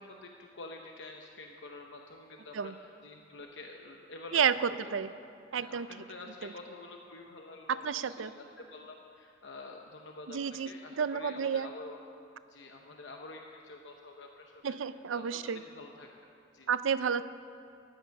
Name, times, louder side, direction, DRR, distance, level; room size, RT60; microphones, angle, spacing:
voice 1, 0.0-4.4 4.7-5.0 5.6-10.4 10.7-12.0 12.5-14.8 15.1-16.7, left 2 dB, 65° left, 2 dB, 0.8 m, -48 dB
voice 2, 4.3-5.1 5.5-5.9 6.4-6.5 7.7-8.3 10.3-10.7 11.0-11.7 14.6-15.6 16.7-17.2, right 7 dB, 90° right, 14 dB, 0.5 m, -30 dB
13.5 x 11.0 x 5.8 m, 2.5 s
head